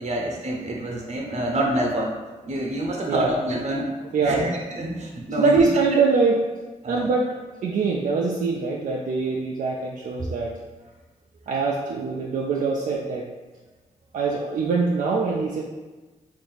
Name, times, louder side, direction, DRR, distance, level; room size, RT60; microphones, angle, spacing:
voice 1, 0.0-2.1 2.4-3.9 4.2-4.5 4.8-5.6 6.8-7.1, right 1 dB, 55° right, 0 dB, 0.8 m, -27 dB
voice 2, 4.1-4.6 5.4-6.4 6.9-10.6 11.5-13.3 14.1-15.6, right 4 dB, 70° right, -2 dB, 0.4 m, -23 dB
3.4 x 2.6 x 4.0 m, 1.2 s
cardioid pair, 60°, 14 cm